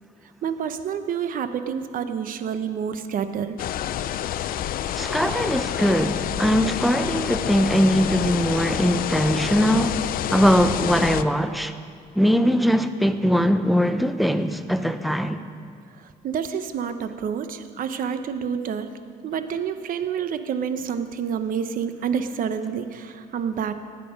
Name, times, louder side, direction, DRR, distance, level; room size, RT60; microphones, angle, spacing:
voice 1, 0.4-3.6 16.2-18.9 19.2-23.7, right 7 dB, 55° right, 0.9 m, -28 dB
sound 1, 3.6-11.2, left 11 dB, 60° left, 0.5 m, -28 dB
voice 2, 5.0-10.1 10.3-11.7 12.1-15.4, equal, ahead, 0.7 m, -21 dB
16.0 x 9.2 x 5.3 m
cardioid pair, 110°, 17 cm